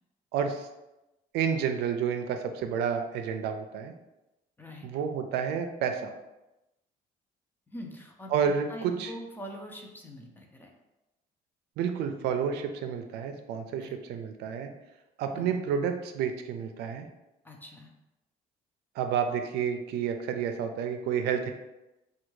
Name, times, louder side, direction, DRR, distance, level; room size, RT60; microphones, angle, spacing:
voice 1, 0.3-0.7 1.3-3.9 4.8-6.1 8.3-9.1 11.8-14.7 15.2-17.1 19.0-21.5, right 7 dB, 80° right, 6 dB, 0.4 m, -30 dB
voice 2, 4.6-4.9 7.7-10.7 13.8-14.0 15.3-15.5 17.4-17.9, equal, 10° left, 1 dB, 0.5 m, -44 dB
3.3 x 2.2 x 3.1 m, 0.97 s
cardioid pair, 110°, 17 cm